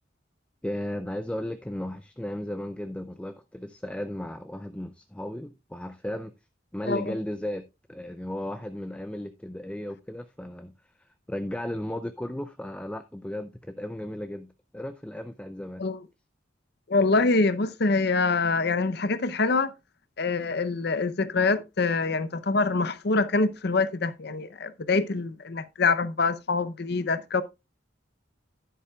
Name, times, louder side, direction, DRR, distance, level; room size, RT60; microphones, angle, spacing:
voice 1, 0.6-6.3 6.7-10.7 11.0-14.5 14.7-15.8, left 1 dB, 5° left, 0.4 m, -35 dB
voice 2, 16.9-19.7 20.2-27.4, left 3 dB, 55° left, 0.6 m, -25 dB
11.0 x 10.0 x 2.3 m
head